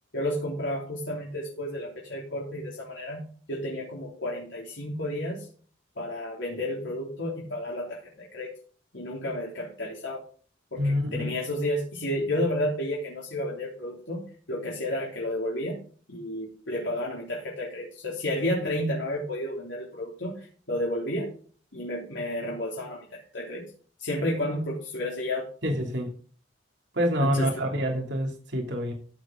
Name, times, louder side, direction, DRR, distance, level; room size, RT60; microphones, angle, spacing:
voice 1, 0.1-5.5 6.0-8.5 8.9-10.2 10.7-15.8 16.1-21.3 21.7-23.6 24.0-25.5 27.2-27.5, left 1 dB, 80° left, -4 dB, 3.5 m, -31 dB
voice 2, 10.8-11.3 25.6-26.1 26.9-28.9, equal, 70° right, 2 dB, 2.7 m, -27 dB
14.5 x 7.4 x 3.8 m, 0.41 s
head